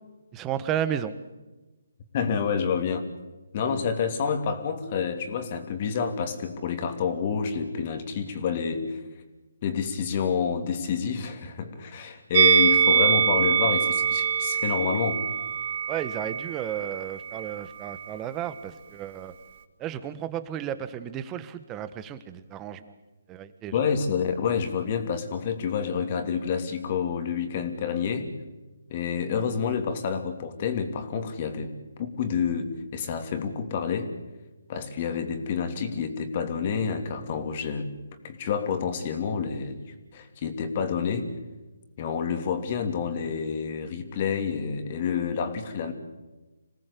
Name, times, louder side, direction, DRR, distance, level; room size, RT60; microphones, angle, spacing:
voice 1, 0.3-1.2 15.9-19.3 19.8-22.8 23.3-23.7, right 10 dB, 15° right, 12 dB, 1.4 m, -33 dB
voice 2, 2.1-3.0 3.5-9.0 9.6-15.2 23.7-28.3 28.9-31.7 32.0-34.1 34.7-37.9 38.2-39.9 40.1-41.3 42.0-45.9, left 6 dB, 35° left, 7 dB, 3.0 m, -28 dB
Musical instrument, 12.3-17.6 17.8-18.0, right 7 dB, 40° right, 1.7 m, -24 dB
26.5 x 18.0 x 8.5 m, 1.1 s
figure-of-eight pair, 150°, 0 cm